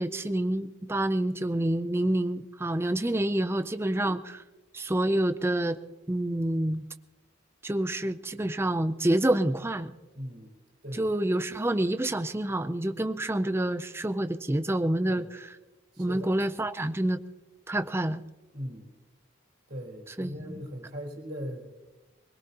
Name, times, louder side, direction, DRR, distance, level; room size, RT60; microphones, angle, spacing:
voice 1, 0.0-4.4 4.7-5.8 6.1-6.8 7.6-9.9 10.9-15.6 16.0-17.2 17.7-18.2 20.2-20.6, right 1 dB, 10° right, 11 dB, 0.4 m, -28 dB
voice 2, 10.1-10.5 10.8-11.0 15.1-15.3 15.9-16.3 18.5-18.9 19.7-21.7, equal, 50° right, -2 dB, 3.8 m, -39 dB
21.5 x 20.0 x 2.9 m, 1.1 s
head